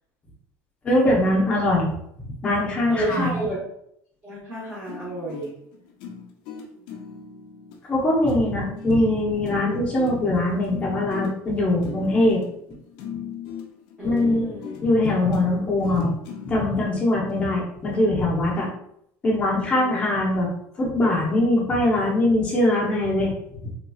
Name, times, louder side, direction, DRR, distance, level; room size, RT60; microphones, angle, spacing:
voice 1, 0.8-3.4 7.9-12.4 12.7-12.8 13.1-13.2 14.0-14.5 14.8-16.1 16.4-18.7 19.2-20.5 20.8-23.6, left 1 dB, 20° left, -3 dB, 0.8 m, -22 dB
voice 2, 2.9-3.6 4.2-5.5 14.0-14.8 19.7-20.0, right 1 dB, 10° right, -10 dB, 1.0 m, -30 dB
sound 1, 4.9-16.6 17.3-17.4 17.9-18.1, left 7 dB, 75° left, 0.6 m, -39 dB
3.5 x 2.8 x 2.3 m, 0.73 s
cardioid pair, 180°, 7 cm